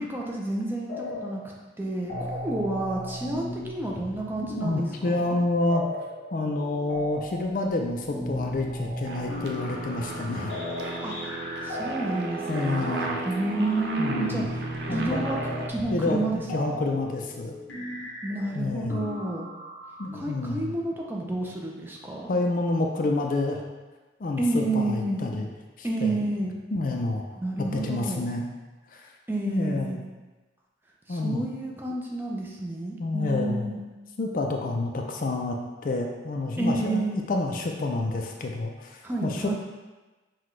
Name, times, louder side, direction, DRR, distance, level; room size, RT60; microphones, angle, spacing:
voice 1, 0.0-5.4 11.0-11.2 11.6-12.9 13.2-14.6 14.9-15.4 15.7-16.8 18.2-19.5 20.1-22.3 24.4-25.2 25.8-26.5 27.4-28.2 29.3-30.0 31.1-33.8 36.6-37.3 39.0-39.5, right 2 dB, 10° right, -2 dB, 0.5 m, -30 dB
sound 1, 0.9-1.5 1.8-20.1, left 1 dB, 90° left, 0.8 m, -37 dB
voice 2, 4.6-5.8 6.3-10.6 10.8-10.9 12.5-13.2 14.0-14.4 14.9-15.2 15.9-17.5 18.5-19.1 20.0-20.7 22.3-23.6 24.2-25.5 25.8-26.2 26.7-27.2 27.6-28.5 28.9-29.1 29.5-30.0 31.1-31.4 33.0-33.7 34.2-37.0 37.3-39.5, left 2 dB, 50° left, 2 dB, 0.4 m, -28 dB
Aircraft, 9.0-15.7, right 2 dB, 65° right, 0.4 m, -35 dB
5.8 x 2.3 x 3.1 m, 1.2 s
head